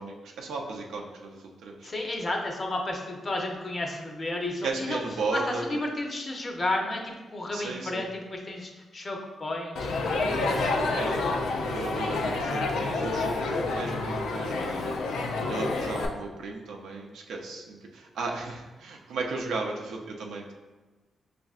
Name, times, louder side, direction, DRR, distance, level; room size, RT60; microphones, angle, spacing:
voice 1, 0.0-1.9 4.6-5.8 7.5-8.1 10.9-11.3 11.7-14.9 15.5-20.5, right 3 dB, 90° right, 1 dB, 0.5 m, -35 dB
voice 2, 1.8-5.0 5.3-10.7, left 2 dB, 40° left, 1 dB, 0.6 m, -32 dB
Crowd, 9.7-16.1, left 3 dB, 90° left, 0.4 m, -28 dB
5.3 x 2.5 x 2.4 m, 1.3 s
cardioid pair, 85°, 0 cm